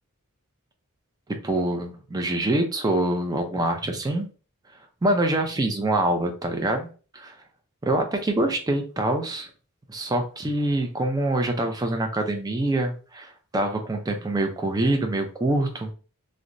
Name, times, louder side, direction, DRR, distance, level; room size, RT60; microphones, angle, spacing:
voice 1, 1.4-4.3 5.0-6.9 7.1-7.4 7.8-9.5 9.9-15.9, right 1 dB, 15° right, 4 dB, 0.4 m, -25 dB
2.9 x 2.1 x 2.5 m, 0.37 s
head